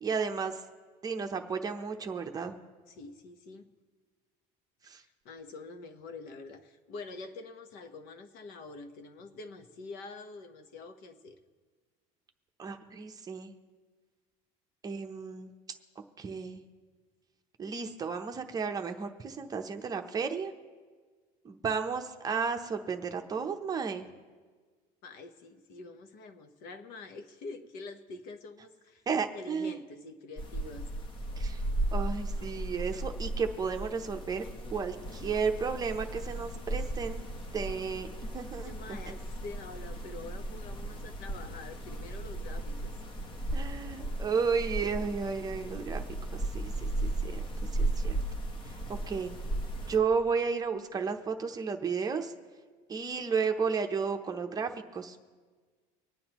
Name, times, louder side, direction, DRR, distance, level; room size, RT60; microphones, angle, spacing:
voice 1, 0.0-0.6 1.0-2.6 4.8-5.0 12.6-13.5 14.8-15.5 16.2-16.6 17.6-20.5 21.4-24.1 29.1-29.8 31.4-31.6 31.9-34.4 34.7-37.3 37.5-38.1 38.3-39.0 43.5-46.0 46.3-47.4 47.7-48.2 48.7-49.3 49.9-52.3 52.9-55.2, right 5 dB, 20° right, 5 dB, 0.7 m, -33 dB
voice 2, 2.9-3.7 5.2-11.4 24.0-24.1 25.0-29.0 29.3-30.9 38.6-43.0, left 3 dB, 60° left, 6 dB, 1.1 m, -46 dB
sound 1, 30.4-50.0, right 1 dB, 30° left, 0.9 m, -36 dB
25.0 x 9.3 x 3.0 m, 1.5 s
cardioid pair, 150°, 17 cm